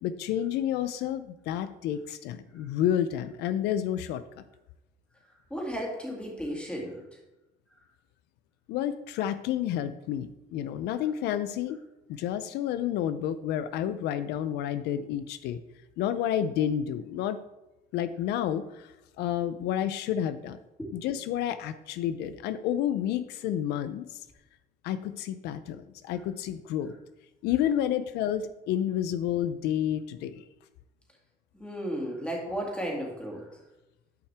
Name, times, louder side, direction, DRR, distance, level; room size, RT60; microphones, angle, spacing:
voice 1, 0.0-4.4 8.7-11.8 12.1-15.6 16.0-17.4 17.9-20.6 20.9-24.2 24.8-26.9 27.4-30.4, left 10 dB, 85° left, 13 dB, 0.4 m, -30 dB
voice 2, 5.5-7.0 20.8-20.9 31.5-33.6, equal, 5° left, -1 dB, 2.3 m, -34 dB
10.0 x 5.6 x 3.4 m, 0.97 s
cardioid pair, 110°, 17 cm